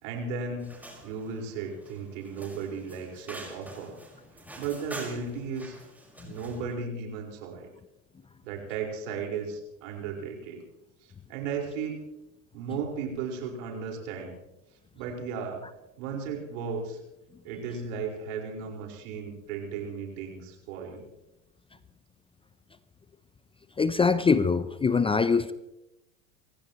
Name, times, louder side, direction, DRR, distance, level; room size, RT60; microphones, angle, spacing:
voice 1, 0.0-0.7 1.0-4.0 4.6-5.8 6.2-7.7 8.4-10.6 11.3-12.0 12.5-14.3 14.9-15.6 16.0-17.0 17.4-21.1, right 5 dB, 70° right, 1 dB, 5.0 m, -35 dB
sound 1, 0.6-6.7, right 1 dB, 5° right, 5.2 m, -46 dB
voice 2, 23.8-25.5, left 5 dB, 15° left, 14 dB, 0.6 m, -23 dB
28.0 x 15.5 x 3.1 m, 0.94 s
hypercardioid pair, 90°, 40 cm